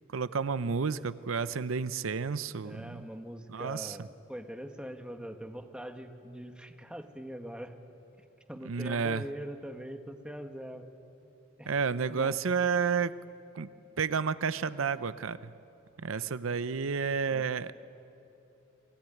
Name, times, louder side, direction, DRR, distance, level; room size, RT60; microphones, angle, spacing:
voice 1, 0.1-3.1 3.5-4.0 8.7-9.2 11.7-13.1 13.5-13.7 14.0-15.5 16.0-17.7, right 5 dB, 85° right, 15 dB, 0.6 m, -31 dB
voice 2, 2.6-7.8 8.5-10.9 11.6-11.7 12.1-12.4 16.2-16.3 17.3-17.5, equal, 5° right, 5 dB, 1.4 m, -42 dB
29.0 x 21.0 x 9.2 m, 3.0 s
head